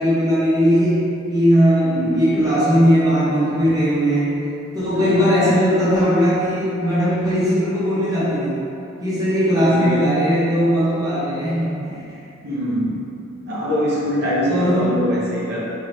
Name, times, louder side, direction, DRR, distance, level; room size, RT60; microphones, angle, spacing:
voice 1, 0.0-4.3 4.7-8.6 9.0-12.2 14.4-14.9, equal, 15° right, -11 dB, 1.0 m, -18 dB
voice 2, 1.8-2.2 4.9-5.5 9.6-9.9 12.4-12.9 13.5-15.6, equal, 45° right, -7 dB, 0.8 m, -23 dB
3.7 x 3.1 x 3.1 m, 2.8 s
head